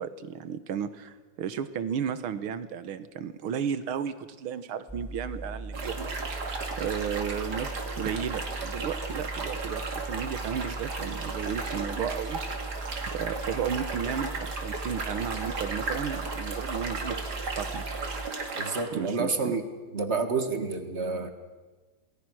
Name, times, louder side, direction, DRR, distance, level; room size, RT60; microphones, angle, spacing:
voice 1, 0.0-6.1 6.8-12.4 13.0-17.9 18.9-19.5, right 7 dB, 85° right, 12 dB, 2.0 m, -34 dB
sound 1, 4.9-18.3, right 2 dB, ahead, 0.5 m, -39 dB
sound 2, 5.7-18.8, right 3 dB, 50° right, 3.0 m, -35 dB
voice 2, 18.6-19.6 19.9-21.3, right 4 dB, 35° right, 8 dB, 1.8 m, -29 dB
28.0 x 19.5 x 6.3 m, 1.3 s
omnidirectional pair, 2.3 m